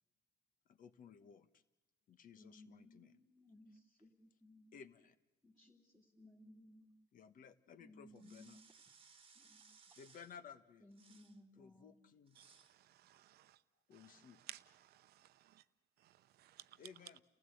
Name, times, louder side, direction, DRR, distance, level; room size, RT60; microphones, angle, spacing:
voice 1, 0.6-1.6 2.1-3.1 4.7-5.2 7.1-8.6 10.0-10.9 11.6-12.4 13.9-14.4 16.8-17.2, left 7 dB, 55° left, 1.4 m, -57 dB
voice 2, 2.4-4.7 5.4-6.9 7.8-8.6 9.3-9.9 10.8-12.0, left 1 dB, ahead, 2.6 m, -62 dB
sound 1, 8.1-10.4 10.9-11.4 12.3-12.8, right 5 dB, 30° right, 1.5 m, -64 dB
voice 3, 12.9-13.6 14.5-15.6 16.4-16.6, right 13 dB, 70° right, 0.8 m, -56 dB
30.0 x 15.5 x 7.9 m
cardioid pair, 110°, 17 cm